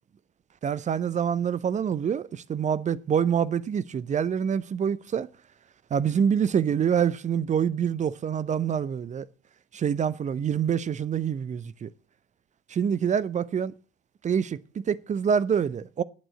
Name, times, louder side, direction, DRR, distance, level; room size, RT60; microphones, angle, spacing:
voice 1, 0.6-5.3 5.9-9.3 9.7-11.9 12.7-13.7 14.2-16.0, right 7 dB, 25° right, 0.6 m, -26 dB
9.4 x 8.9 x 8.1 m
figure-of-eight pair, 65°, 32 cm